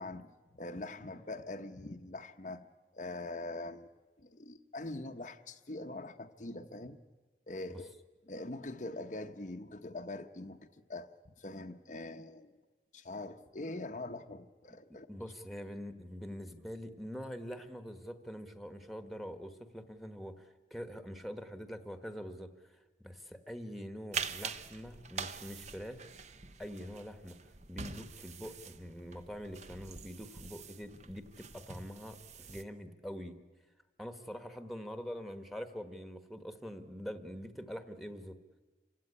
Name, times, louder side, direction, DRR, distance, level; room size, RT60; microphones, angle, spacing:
voice 1, 0.0-2.6 2.9-3.9 4.2-7.0 7.5-7.9 8.3-11.1 11.4-12.5 12.9-15.1, left 2 dB, 45° left, 5 dB, 0.9 m, -43 dB
voice 2, 15.1-26.1 26.6-27.4 27.7-33.4 34.0-38.4, equal, ahead, 9 dB, 1.3 m, -44 dB
sound 1, 24.1-32.6, right 6 dB, 40° right, 0.8 m, -44 dB
27.5 x 16.5 x 9.8 m, 1.3 s
head